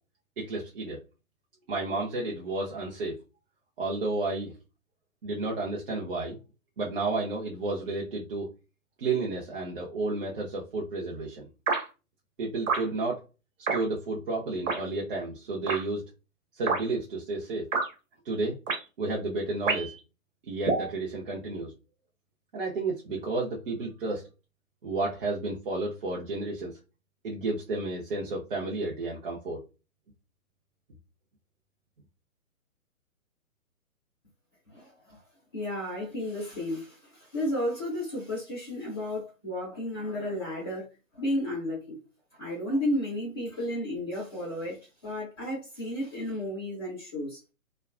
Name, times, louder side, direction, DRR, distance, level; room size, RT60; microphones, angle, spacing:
voice 1, 0.4-1.0 1.7-3.2 3.8-4.5 5.2-6.4 6.8-8.5 9.0-11.5 12.4-13.2 13.7-16.0 16.6-17.6 18.2-18.6 19.0-19.9 20.4-21.7 22.5-24.2 24.8-26.7 27.2-29.6, right 3 dB, 40° right, 0.7 m, -31 dB
sound 1, 11.7-11.8 12.7-12.9 13.7-13.8 14.7-14.8 15.7-15.8 16.7-16.8 17.7-17.9 18.7-18.8 19.7-20.0 20.7-20.9, right 4 dB, 60° right, 1.2 m, -27 dB
voice 2, 34.7-35.2 35.5-40.9 41.1-42.0 42.3-47.4, left 1 dB, 20° left, 0.4 m, -33 dB
2.7 x 2.3 x 2.3 m
hypercardioid pair, 140°, 42 cm